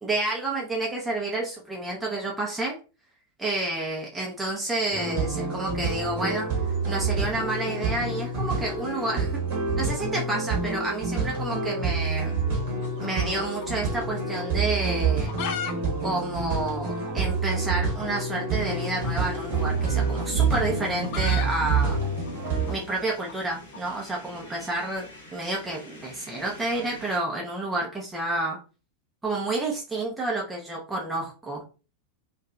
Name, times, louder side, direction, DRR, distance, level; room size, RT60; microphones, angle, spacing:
voice 1, 0.0-2.8 3.4-6.5 6.9-9.4 9.8-12.4 13.0-15.3 16.0-22.0 22.7-28.6 29.2-31.6, right 2 dB, 10° right, -2 dB, 0.5 m, -30 dB
sound 1, 4.9-22.7, right 4 dB, 55° right, 0.9 m, -27 dB
sound 2, 12.8-14.1 14.4-14.5 15.0-15.7 16.0-16.1 16.3-16.4 17.0-17.1 18.3-18.5 19.6-23.8, left 7 dB, 45° left, 0.4 m, -36 dB
sound 3, 18.5-27.2, equal, 70° left, 0.9 m, -42 dB
2.7 x 2.3 x 2.3 m, 0.34 s
figure-of-eight pair, 90°, 0 cm